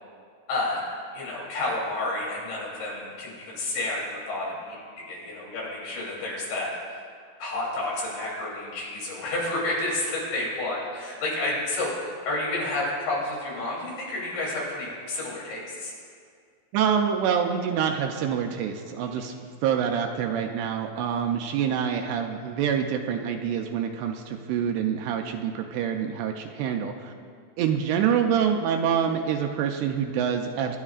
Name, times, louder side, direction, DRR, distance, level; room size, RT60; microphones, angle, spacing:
voice 1, 0.5-0.8 1.1-6.8 7.4-12.0 12.3-15.9, left 2 dB, 85° left, -4 dB, 5.5 m, -30 dB
voice 2, 16.7-19.3 19.6-27.1 27.6-30.8, right 8 dB, 80° right, 4 dB, 2.5 m, -26 dB
24.5 x 11.0 x 2.4 m, 2.1 s
omnidirectional pair, 5.0 m